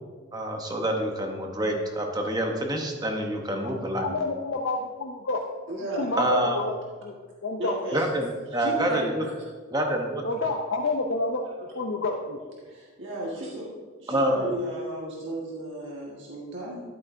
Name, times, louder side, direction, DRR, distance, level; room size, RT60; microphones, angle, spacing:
voice 1, 0.3-4.1 6.2-6.6 7.9-9.2 9.7-10.3 14.1-14.4, right 1 dB, 20° right, 2 dB, 0.9 m, -27 dB
voice 2, 4.0-5.4 6.0-6.7 7.0-7.2 7.4-7.8 10.2-11.4 11.7-12.4, left 3 dB, 60° left, 0 dB, 0.6 m, -28 dB
voice 3, 5.7-6.1 7.6-8.0 8.5-9.3 12.7-13.6 14.0-16.8, right 1 dB, 55° right, -5 dB, 1.6 m, -33 dB
11.5 x 8.0 x 2.7 m, 1.5 s
head